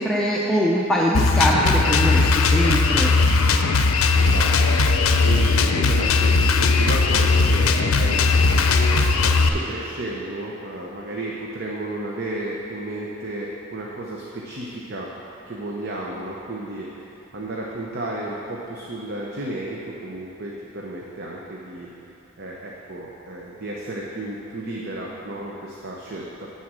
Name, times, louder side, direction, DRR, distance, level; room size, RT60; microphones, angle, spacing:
voice 1, 0.0-3.1, equal, ahead, -5 dB, 0.5 m, -22 dB
Drum kit, 1.1-9.5, left 4 dB, 80° left, 0.5 m, -18 dB
voice 2, 4.2-8.5 8.8-15.1 15.5-21.9 22.4-26.5, right 1 dB, 50° right, -3 dB, 0.8 m, -33 dB
11.0 x 4.2 x 7.5 m, 3.0 s
head